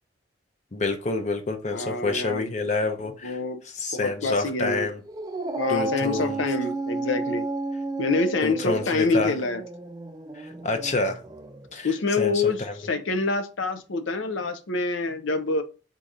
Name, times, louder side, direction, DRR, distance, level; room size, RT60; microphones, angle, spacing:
voice 1, 0.7-3.4 3.6-5.0 5.7-6.4 8.4-9.3 10.3-11.2 11.7-12.7, left 3 dB, 35° left, 0.6 m, -28 dB
voice 2, 1.7-2.5 3.2-3.6 4.0-4.9 5.6-7.4 8.0-9.6 11.8-15.6, left 3 dB, 80° left, 0.6 m, -26 dB
Dog, 5.1-11.7, right 3 dB, 20° right, 0.3 m, -32 dB
3.8 x 2.8 x 4.9 m
head